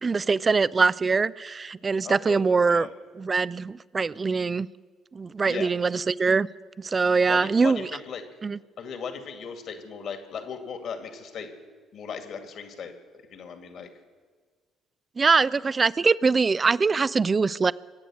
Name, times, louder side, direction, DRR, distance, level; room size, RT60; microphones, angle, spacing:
voice 1, 0.0-2.9 3.2-4.7 5.1-6.5 6.8-7.9 8.4-8.6 15.2-17.7, right 4 dB, 30° right, 20 dB, 0.4 m, -23 dB
voice 2, 2.0-2.4 2.7-2.9 5.4-5.7 7.2-8.2 8.8-11.5 11.9-12.9 13.3-13.9, left 6 dB, 55° left, 6 dB, 2.2 m, -37 dB
23.5 x 9.1 x 6.3 m, 1.5 s
figure-of-eight pair, 45°, 0 cm